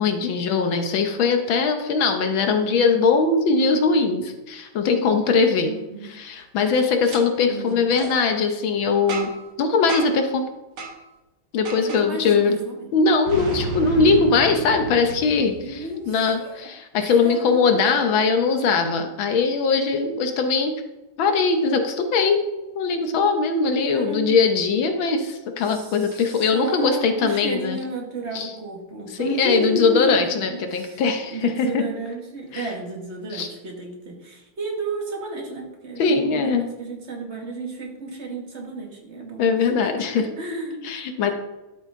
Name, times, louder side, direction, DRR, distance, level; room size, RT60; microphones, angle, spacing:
voice 1, 0.0-5.7 6.2-9.3 9.6-10.5 11.5-12.5 12.9-20.8 21.2-22.4 22.7-27.8 28.3-28.5 29.1-31.8 32.5-32.7 33.3-33.5 36.0-36.7 39.4-40.2 40.8-41.3, left 4 dB, 70° left, 6 dB, 1.6 m, -21 dB
voice 2, 2.4-2.8 5.7-6.2 7.5-7.9 11.8-12.9 15.6-16.7 17.0-18.0 23.8-24.5 25.6-40.9 41.2-41.3, right 2 dB, 35° right, 1 dB, 1.9 m, -32 dB
Boom, 7.0-7.2 7.9-8.1 9.1-9.5 9.9-10.3 10.8-10.9 11.7-12.0 13.3-16.0, right 2 dB, 70° right, 2.5 m, -32 dB
12.0 x 7.1 x 3.7 m, 1.0 s
omnidirectional pair, 2.3 m